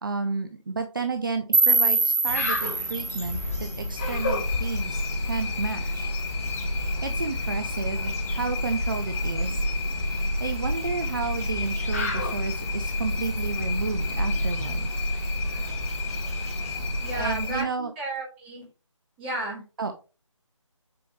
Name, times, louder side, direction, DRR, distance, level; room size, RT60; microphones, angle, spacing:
voice 1, 0.0-6.1 6.6-9.6 9.9-14.9 17.1-17.9 19.8-19.9, right 4 dB, 40° right, 8 dB, 0.6 m, -32 dB
sound 1, 1.5-4.5, right 3 dB, 85° right, 0.6 m, -24 dB
sound 2, 2.2-17.3, left 2 dB, 30° left, 1.4 m, -36 dB
sound 3, 4.0-17.6, left 1 dB, 45° left, 3.6 m, -29 dB
voice 2, 17.0-17.7 18.0-18.7 19.2-19.6, right 2 dB, 10° right, -4 dB, 2.4 m, -32 dB
6.9 x 5.1 x 3.2 m, 0.33 s
figure-of-eight pair, 160°, 17 cm